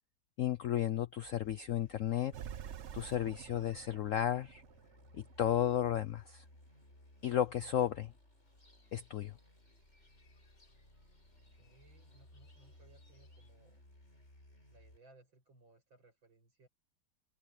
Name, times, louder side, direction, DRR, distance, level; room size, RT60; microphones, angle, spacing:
voice 1, 0.4-2.3 2.9-4.6 5.1-6.4 7.2-8.1 8.9-9.3, left 10 dB, 75° left, 0.7 m, -33 dB
sound 1, 1.2-15.0, left 1 dB, 35° left, 7.2 m, -62 dB
sound 2, 2.3-5.7, right 9 dB, 60° right, 0.7 m, -48 dB
sound 3, 8.4-13.5, left 2 dB, 55° left, 6.9 m, -70 dB
voice 2, 11.5-13.8 14.7-16.7, right 2 dB, 85° right, 8.4 m, -64 dB
open air
omnidirectional pair, 2.1 m